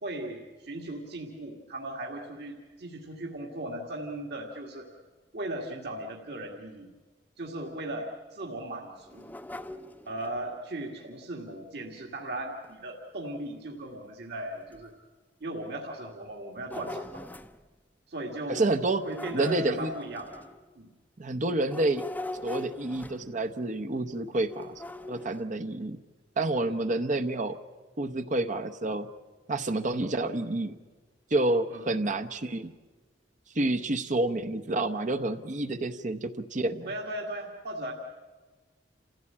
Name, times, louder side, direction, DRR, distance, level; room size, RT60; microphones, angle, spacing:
voice 1, 0.0-4.9 5.3-6.9 7.4-9.3 10.1-14.9 15.4-17.2 18.1-18.6 19.0-20.3 20.8-20.9 26.6-26.7 31.7-31.9 36.9-37.9, right 1 dB, 65° right, -1 dB, 2.0 m, -37 dB
sound 1, 9.0-10.4 12.6-12.7 13.2-13.3 14.1-14.2 14.7-14.8 16.3-17.6 18.9-20.8 21.6-23.5 24.5-25.4, left 1 dB, 10° left, 0.6 m, -41 dB
voice 2, 18.5-19.0 19.3-19.9 21.2-22.0 22.4-24.7 25.1-26.0 26.4-27.6 28.0-29.1 29.5-30.8 31.3-32.7 33.6-36.9, right 2 dB, 45° right, 9 dB, 0.8 m, -29 dB
28.5 x 15.5 x 8.7 m, 1.3 s
head